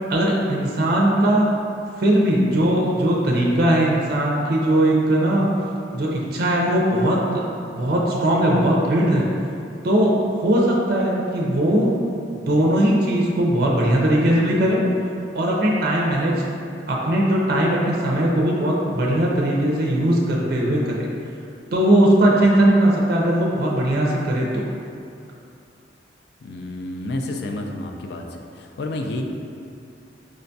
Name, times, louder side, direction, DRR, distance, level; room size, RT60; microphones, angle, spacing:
voice 1, 0.1-1.5 2.0-5.5 5.9-7.5 7.7-9.3 9.8-12.0 12.5-14.8 15.3-16.3 16.9-21.1 21.7-24.7, right 1 dB, 55° right, -3 dB, 0.4 m, -19 dB
voice 2, 26.4-29.2, left 1 dB, 60° left, 3 dB, 0.3 m, -30 dB
4.8 x 2.2 x 2.6 m, 2.5 s
head